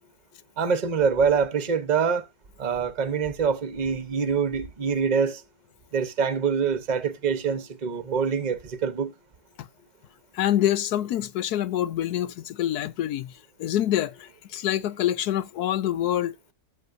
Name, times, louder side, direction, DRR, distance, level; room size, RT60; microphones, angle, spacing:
voice 1, 0.6-2.3 2.6-5.4 5.9-9.1, right 6 dB, 35° right, 1.0 m, -25 dB
voice 2, 10.3-16.3, left 12 dB, 85° left, 1.2 m, -26 dB
13.0 x 6.9 x 2.6 m
omnidirectional pair, 1.6 m